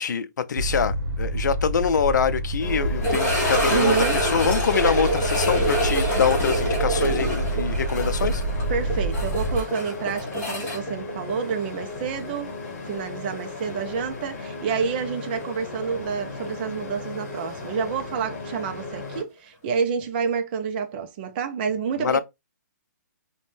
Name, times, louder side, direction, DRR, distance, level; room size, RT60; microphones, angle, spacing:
voice 1, 0.0-8.4 22.0-22.2, left 7 dB, 75° left, 0.4 m, -25 dB
sound 1, 0.6-9.6, right 1 dB, 60° right, 0.8 m, -27 dB
sound 2, 2.6-19.2, left 3 dB, 45° left, 1.0 m, -36 dB
sound 3, 3.0-11.9 12.2-12.3 12.9-13.0 15.6-15.7, right 1 dB, 20° left, 1.0 m, -26 dB
voice 2, 3.7-4.2 8.7-12.6 12.8-22.2, right 6 dB, 30° right, 0.4 m, -28 dB
2.5 x 2.1 x 3.2 m
hypercardioid pair, 150°, 10 cm